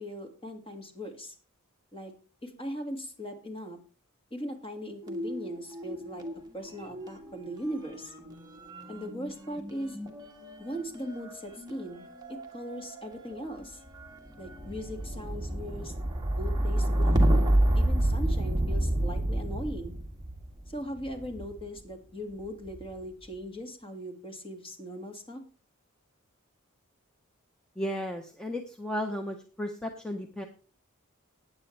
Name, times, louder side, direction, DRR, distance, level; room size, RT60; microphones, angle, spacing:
voice 1, 0.0-1.3 1.9-2.1 2.4-3.8 4.3-6.3 6.5-8.1 8.9-10.0 10.6-13.8 14.4-15.9 16.4-17.4 17.7-20.0 20.7-25.4, equal, 25° left, 4 dB, 2.0 m, -39 dB
sound 1, 5.0-6.4 6.6-21.7 22.5-23.0, right 1 dB, 20° right, 1.7 m, -30 dB
voice 2, 27.8-30.5, equal, 5° left, 4 dB, 0.8 m, -34 dB
16.0 x 9.5 x 3.3 m, 0.37 s
head